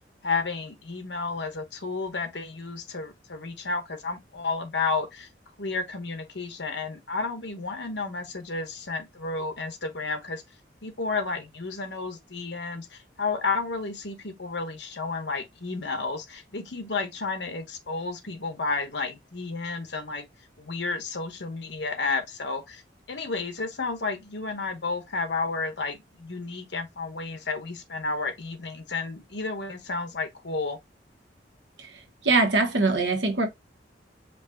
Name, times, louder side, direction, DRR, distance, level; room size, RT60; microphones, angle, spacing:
voice 1, 0.2-5.3 5.6-10.4 10.8-20.3 20.6-22.8 23.1-30.8, left 4 dB, 70° left, 1.1 m, -32 dB
voice 2, 32.2-33.5, right 3 dB, 80° right, 1.2 m, -22 dB
5.2 x 2.5 x 3.7 m
head